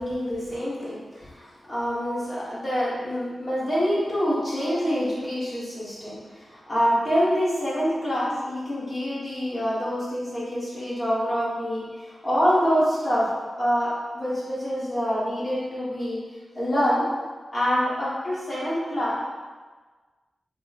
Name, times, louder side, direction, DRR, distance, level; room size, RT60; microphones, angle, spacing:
voice 1, 0.0-13.3 13.6-16.2 16.5-17.0 17.5-19.2, equal, 30° left, -9 dB, 1.2 m, -26 dB
3.0 x 2.1 x 3.9 m, 1.4 s
wide cardioid pair, 110°, 0 cm